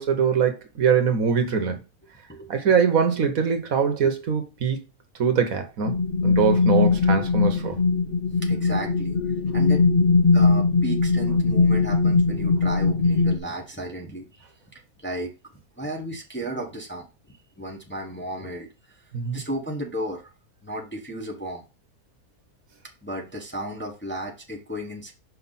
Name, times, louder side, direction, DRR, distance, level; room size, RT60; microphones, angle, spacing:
voice 1, 0.0-1.8 2.5-4.8 5.2-7.8 19.1-19.4, right 6 dB, 60° right, 1.4 m, -23 dB
voice 2, 2.3-2.8 8.4-9.2 9.5-9.8 10.3-14.5 14.7-15.3 15.8-19.0 19.3-20.3 20.6-21.6 23.0-25.1, right 1 dB, 10° left, 1.1 m, -34 dB
sound 1, 5.9-13.4, left 4 dB, 55° left, 0.5 m, -20 dB
5.7 x 5.1 x 4.1 m
omnidirectional pair, 1.7 m